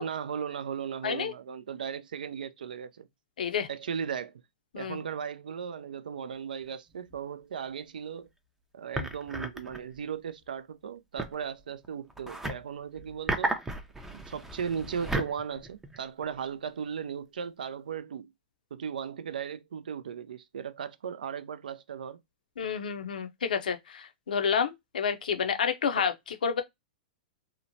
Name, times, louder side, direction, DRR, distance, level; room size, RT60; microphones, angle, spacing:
voice 1, 0.0-3.1 3.7-4.4 4.8-8.3 8.7-13.6 14.1-18.3 18.7-22.2 26.0-26.1, right 7 dB, 85° right, 0.3 m, -37 dB
voice 2, 3.4-3.7 4.7-5.0 22.6-26.6, left 7 dB, 80° left, 0.5 m, -29 dB
sound 1, 6.7-6.8 7.1-7.2 8.9-10.0 11.2-12.6 12.9-16.4, right 2 dB, 5° right, 0.4 m, -34 dB
2.9 x 2.1 x 2.6 m
hypercardioid pair, 115°, 5 cm